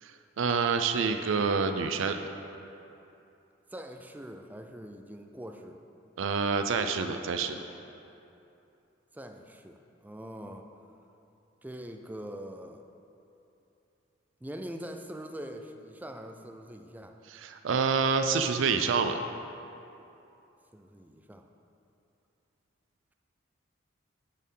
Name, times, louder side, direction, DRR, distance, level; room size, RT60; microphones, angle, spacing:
voice 1, 0.0-2.2 6.2-7.6 17.3-19.2, right 5 dB, 75° right, 7 dB, 0.4 m, -27 dB
voice 2, 3.7-5.8 9.1-10.7 11.6-12.8 14.4-17.2 20.7-21.5, equal, 10° right, 5 dB, 0.4 m, -43 dB
11.5 x 4.4 x 5.4 m, 2.8 s
head